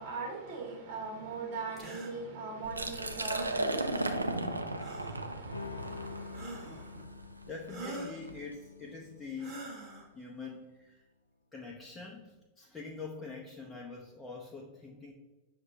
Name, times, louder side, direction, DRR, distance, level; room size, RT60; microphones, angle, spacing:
voice 1, 0.0-7.0, right 4 dB, 40° right, 0.9 m, -42 dB
sound 1, 1.8-2.1 3.3-3.6 4.8-5.2 6.3-6.9 7.7-8.2 9.4-10.1, right 2 dB, 20° right, 0.9 m, -43 dB
Liquid, 2.6-8.4, right 2 dB, 80° right, 0.3 m, -36 dB
sound 2, 5.5-10.4, left 4 dB, 85° left, 0.3 m, -47 dB
voice 2, 7.4-9.6 10.1-11.0 11.5-15.1, left 4 dB, 15° left, 0.5 m, -44 dB
6.5 x 2.2 x 2.7 m
figure-of-eight pair, 90°, 0 cm